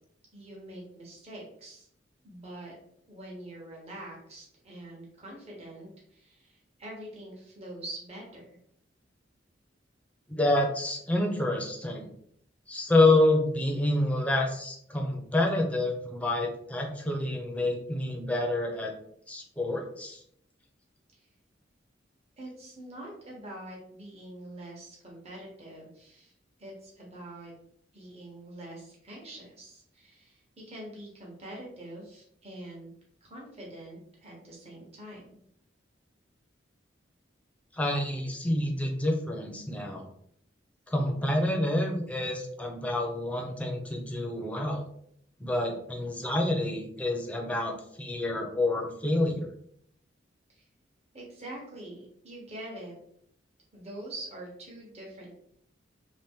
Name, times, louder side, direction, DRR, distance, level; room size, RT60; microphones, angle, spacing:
voice 1, 0.3-1.9 2.2-2.7 3.1-8.6 22.4-26.3 26.6-27.5 27.9-32.9 33.2-35.4 50.5-50.6 51.1-52.9 53.7-55.3, right 1 dB, 35° right, -4 dB, 1.1 m, -44 dB
voice 2, 10.3-12.1 12.7-18.9 19.3-20.2 37.7-40.1 40.9-44.8 45.4-49.5, left 2 dB, 5° left, 2 dB, 0.6 m, -28 dB
3.0 x 2.9 x 3.5 m, 0.68 s
head